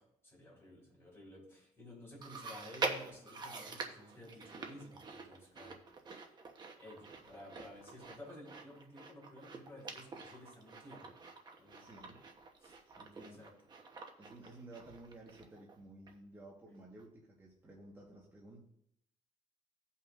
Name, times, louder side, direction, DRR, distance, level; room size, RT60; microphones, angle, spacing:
voice 1, 0.0-5.8 6.0-6.2 6.7-11.1 11.6-12.1 12.6-13.5 16.7-16.8, left 1 dB, 20° left, -6 dB, 4.0 m, -54 dB
Chewing mastication, 2.2-15.8 16.1-16.2 17.0-17.1, right 3 dB, 35° right, 1.0 m, -46 dB
voice 2, 11.8-12.2 13.0-13.4 14.2-18.6, right 2 dB, 15° right, -4 dB, 1.3 m, -54 dB
17.0 x 5.6 x 2.5 m, 0.74 s
cardioid pair, 165°, 13 cm